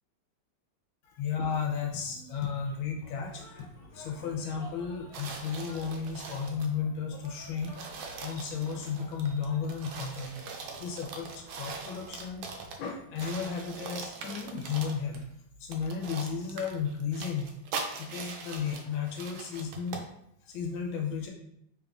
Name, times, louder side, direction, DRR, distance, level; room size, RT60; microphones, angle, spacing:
voice 1, 1.0-10.3 10.8-12.4 12.8-15.2 15.6-17.5 18.0-20.0 20.4-21.3, left 6 dB, 90° left, 1 dB, 1.5 m, -34 dB
sound 1, 2.3-12.7, left 2 dB, 55° left, 1.6 m, -53 dB
sound 2, 5.1-6.8 7.2-7.3 7.6-12.9 13.2-15.2 15.7-20.1, right 4 dB, 90° right, 1.4 m, -42 dB
3.6 x 3.5 x 2.5 m, 0.76 s
omnidirectional pair, 2.1 m